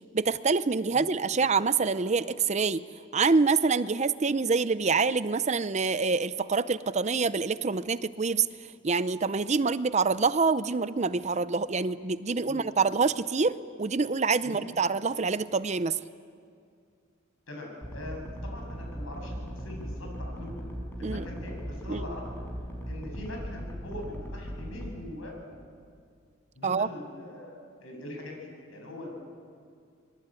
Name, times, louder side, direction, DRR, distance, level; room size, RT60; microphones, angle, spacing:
voice 1, 0.1-2.8 3.1-8.5 8.8-16.0 21.0-21.3 21.9-22.0 26.6-26.9, right 4 dB, 35° right, 14 dB, 0.6 m, -26 dB
voice 2, 17.5-20.7 21.0-22.4 22.9-25.3 26.5-29.1, left 1 dB, 80° left, 1 dB, 7.9 m, -42 dB
sound 1, 17.8-24.9, equal, 10° left, 5.0 m, -38 dB
26.5 x 22.5 x 9.1 m, 2.2 s
head